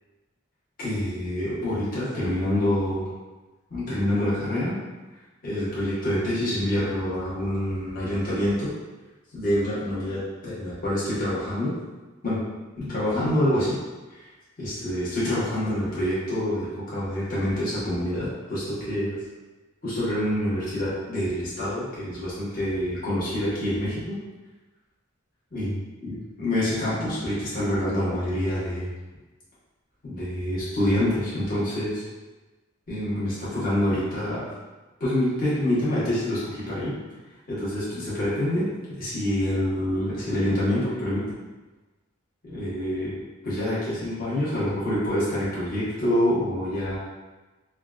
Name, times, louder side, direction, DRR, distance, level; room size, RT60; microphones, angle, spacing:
voice 1, 0.8-3.0 3.7-4.7 5.4-8.7 9.3-11.7 12.2-12.4 12.8-13.8 14.1-14.3 14.6-19.2 19.8-24.2 25.5-25.8 26.0-28.9 30.0-32.0 32.9-34.4 35.0-36.9 37.5-38.7 39.0-41.4 42.4-43.1 43.4-47.0, left 1 dB, 40° left, -10 dB, 1.1 m, -26 dB
3.5 x 2.3 x 2.4 m, 1.2 s
head